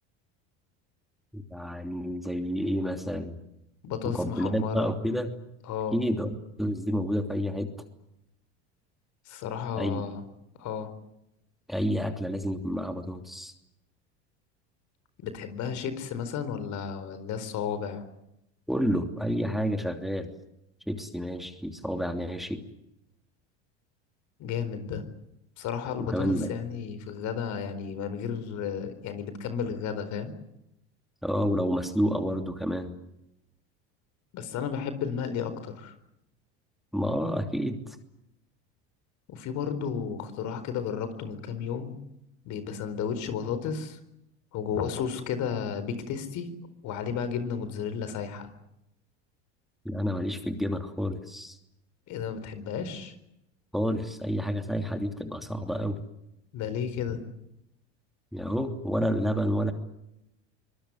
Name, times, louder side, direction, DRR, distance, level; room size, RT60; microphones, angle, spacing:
voice 1, 1.3-3.4 4.0-5.3 5.9-7.7 9.7-10.0 11.7-13.5 18.7-20.3 20.9-22.6 26.1-26.5 31.2-32.9 36.9-38.0 49.8-51.6 53.7-56.0 58.3-59.7, equal, ahead, 6 dB, 3.0 m, -29 dB
voice 2, 3.8-4.9 5.6-6.0 9.3-10.2 10.6-10.9 15.2-18.0 24.4-25.0 25.6-30.3 34.3-35.9 39.3-41.9 42.4-44.0 44.5-46.5 46.8-48.5 52.1-53.1 56.5-57.2, left 7 dB, 55° left, 11 dB, 4.4 m, -33 dB
24.5 x 21.5 x 9.7 m, 0.85 s
hypercardioid pair, 90°, 33 cm